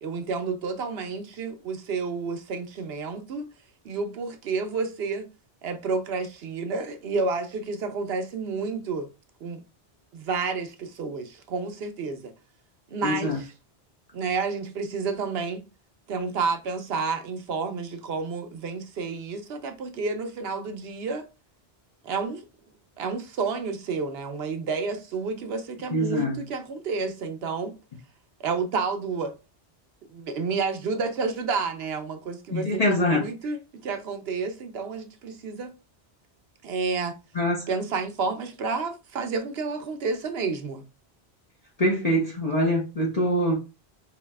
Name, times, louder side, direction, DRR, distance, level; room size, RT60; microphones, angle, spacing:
voice 1, 0.0-3.5 3.8-5.3 5.6-9.1 9.4-9.6 10.1-12.3 12.9-13.5 14.1-15.7 16.1-21.2 22.0-22.4 23.0-27.7 28.4-29.3 30.1-35.7 36.6-37.1 37.7-40.8, right 4 dB, 70° right, 0.9 m, -30 dB
voice 2, 13.0-13.4 25.9-26.4 32.5-33.3 37.3-37.7 41.8-43.6, left 1 dB, 40° left, 0.8 m, -24 dB
4.7 x 2.8 x 2.2 m
omnidirectional pair, 1.1 m